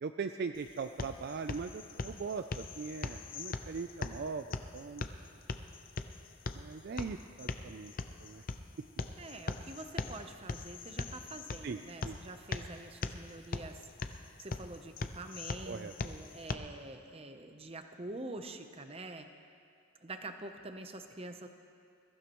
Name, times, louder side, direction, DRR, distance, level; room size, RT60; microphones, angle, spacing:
voice 1, 0.0-5.0 6.5-7.9 8.2-8.4 11.6-12.2 15.7-15.9, right 5 dB, 50° right, 8 dB, 0.3 m, -40 dB
sound 1, 0.5-16.5, left 3 dB, 40° left, 0.5 m, -41 dB
voice 2, 9.2-13.8 14.4-19.3 20.0-21.5, right 2 dB, 25° right, 7 dB, 0.7 m, -46 dB
22.0 x 15.0 x 3.0 m, 2.3 s
head